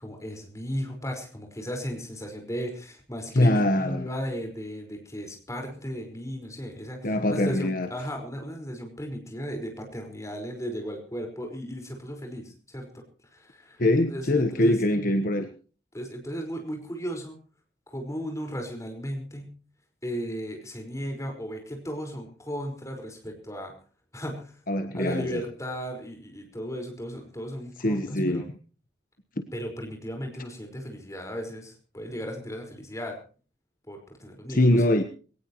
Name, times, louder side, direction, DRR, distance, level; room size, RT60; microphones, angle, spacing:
voice 1, 0.0-13.0 13.3-13.8 14.1-14.7 15.9-17.4 17.9-19.5 20.0-23.7 24.1-24.6 24.9-28.4 29.5-33.2 33.9-34.9, equal, 20° left, 3 dB, 5.1 m, -35 dB
voice 2, 3.3-4.1 7.0-7.9 13.8-15.5 24.7-25.4 27.8-28.4 34.5-35.0, left 1 dB, 55° left, 7 dB, 1.3 m, -23 dB
21.5 x 18.5 x 3.1 m, 0.38 s
head